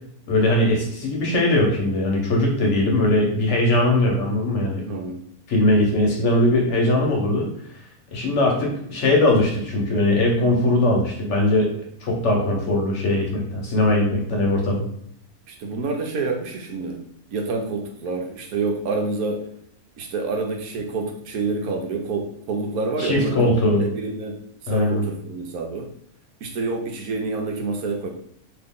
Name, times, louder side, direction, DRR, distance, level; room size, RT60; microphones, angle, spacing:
voice 1, 0.3-4.8 5.5-7.5 8.1-11.7 12.0-14.8 23.0-23.8 24.7-25.0, left 1 dB, 60° left, 0 dB, 1.0 m, -20 dB
voice 2, 4.8-5.2 15.5-17.0 17.3-19.5 20.0-25.9 26.4-28.1, right 3 dB, 75° right, 2 dB, 1.1 m, -28 dB
2.8 x 2.5 x 3.6 m, 0.68 s
omnidirectional pair, 1.6 m